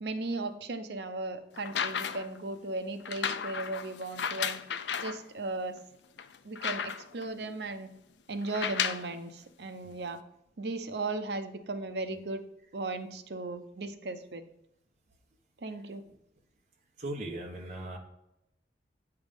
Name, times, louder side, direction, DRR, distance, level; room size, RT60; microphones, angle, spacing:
voice 1, 0.0-4.6 5.0-5.8 6.4-7.9 8.3-10.2 10.6-12.4 12.7-14.4 15.6-16.0, right 2 dB, 70° right, 9 dB, 0.7 m, -36 dB
sound 1, 1.6-2.4 3.0-5.2 5.8-5.9 6.2-7.2 8.4-9.1 10.1-10.2, left 7 dB, 85° left, 0.4 m, -34 dB
voice 2, 17.0-18.0, right 1 dB, 40° right, -1 dB, 1.2 m, -38 dB
9.0 x 3.5 x 5.2 m, 0.83 s
head